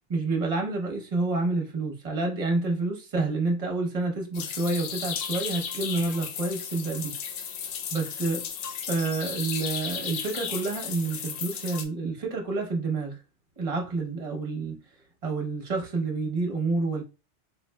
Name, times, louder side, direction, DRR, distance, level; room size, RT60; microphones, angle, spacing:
voice 1, 0.1-7.1 7.9-8.5 8.9-13.2 13.6-14.8 15.2-17.0, right 3 dB, 35° right, 0.9 m, -28 dB
sound 1, 4.3-11.8, left 7 dB, 65° left, 0.7 m, -34 dB
3.4 x 3.2 x 2.3 m
omnidirectional pair, 1.2 m